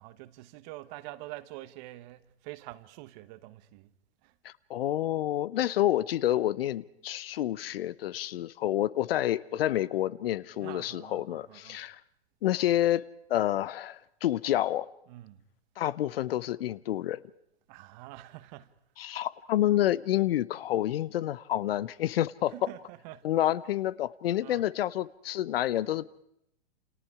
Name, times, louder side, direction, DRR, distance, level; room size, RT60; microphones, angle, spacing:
voice 1, 0.0-3.9 4.2-4.3 10.6-11.8 15.1-15.4 17.7-18.7 22.5-23.3 24.4-24.7, right 17 dB, 40° right, 1.3 m, -46 dB
voice 2, 4.4-12.0 12.4-13.0 13.3-14.9 15.8-17.2 19.0-22.5 23.2-26.2, left 13 dB, 60° left, 0.9 m, -28 dB
29.0 x 28.0 x 4.9 m
hypercardioid pair, 110°, 33 cm